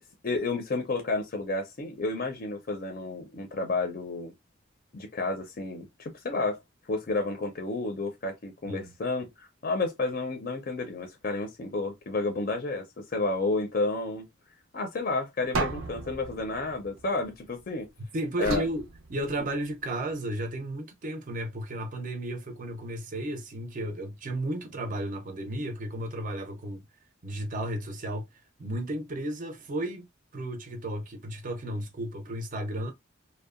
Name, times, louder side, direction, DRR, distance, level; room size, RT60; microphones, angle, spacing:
voice 1, 0.2-4.3 4.9-6.6 6.9-14.2 14.7-17.9 18.4-18.6, left 3 dB, 45° left, 0.5 m, -31 dB
sound 1, 15.5-17.7 18.4-19.8, right 3 dB, 85° right, 0.6 m, -35 dB
voice 2, 18.1-26.8 27.2-28.2 28.6-30.1 30.3-32.9, right 1 dB, 40° right, 0.5 m, -33 dB
2.7 x 2.1 x 2.3 m
head